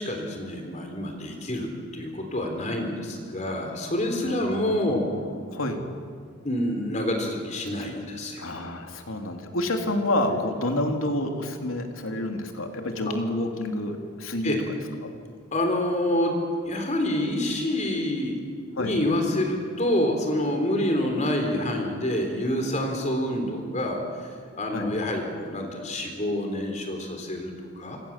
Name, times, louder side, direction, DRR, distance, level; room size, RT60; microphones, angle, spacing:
voice 1, 0.0-5.0 6.4-8.4 14.4-14.6 15.5-18.4 18.7-24.3 24.6-28.0, left 1 dB, 35° left, 3 dB, 3.6 m, -27 dB
voice 2, 4.9-5.8 8.4-14.6 15.0-15.1 18.8-19.0 24.7-24.9, left 1 dB, 85° left, 4 dB, 3.1 m, -29 dB
28.0 x 25.5 x 7.4 m, 2.2 s
head